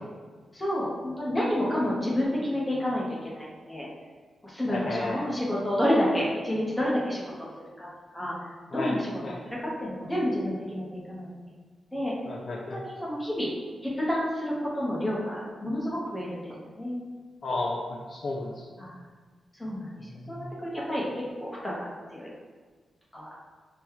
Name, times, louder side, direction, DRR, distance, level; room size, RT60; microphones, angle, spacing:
voice 1, 0.5-3.9 4.4-7.5 7.8-7.9 8.1-8.3 8.7-9.1 9.4-11.3 11.9-12.1 12.7-13.5 14.0-17.0 18.8-18.9 19.6-22.3 23.1-23.3, left 1 dB, 10° left, -5 dB, 0.9 m, -29 dB
voice 2, 4.7-5.2 8.7-8.9 9.2-9.4 12.3-12.8 17.4-18.5 20.2-20.5, left 2 dB, 50° left, -1 dB, 0.4 m, -32 dB
5.2 x 2.3 x 2.9 m, 1.5 s
wide cardioid pair, 135°, 0 cm